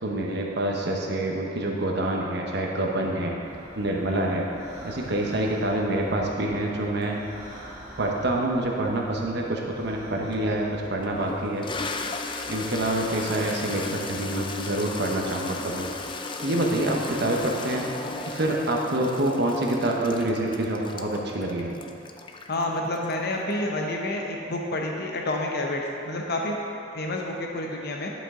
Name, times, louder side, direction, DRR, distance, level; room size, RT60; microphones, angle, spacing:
voice 1, 0.0-3.4 3.8-4.5 4.8-7.2 8.0-11.6 12.5-15.9 16.4-17.9 18.2-21.8, right 1 dB, 60° right, 0 dB, 1.0 m, -26 dB
sound 1, 3.4-11.5, equal, 20° right, 1.7 m, -46 dB
Toilet flush, 10.3-10.4 11.0-23.5, left 3 dB, 25° left, 0.4 m, -36 dB
voice 2, 22.5-26.6 26.9-28.1, left 1 dB, 60° left, 0 dB, 0.7 m, -29 dB
10.5 x 5.3 x 3.7 m, 2.7 s
head